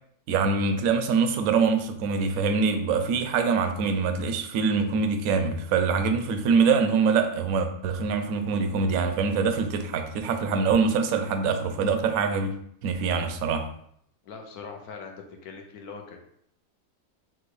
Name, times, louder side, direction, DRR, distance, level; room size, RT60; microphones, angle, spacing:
voice 1, 0.3-12.6 12.8-13.7, right 5 dB, 70° right, 0.9 m, -24 dB
voice 2, 14.2-16.2, left 5 dB, 70° left, 1.1 m, -41 dB
5.9 x 2.3 x 3.1 m
omnidirectional pair, 1.7 m